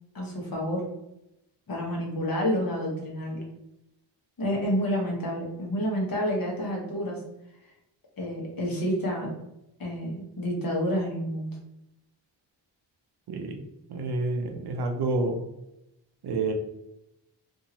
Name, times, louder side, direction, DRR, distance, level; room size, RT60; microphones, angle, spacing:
voice 1, 0.1-0.8 1.7-3.4 4.4-7.2 8.2-9.3 9.8-11.6, equal, 50° left, -2 dB, 1.2 m, -29 dB
voice 2, 13.3-13.6 13.9-15.4 16.2-16.5, right 2 dB, 55° right, 5 dB, 0.6 m, -28 dB
2.7 x 2.6 x 2.8 m, 0.85 s
cardioid pair, 65°, 46 cm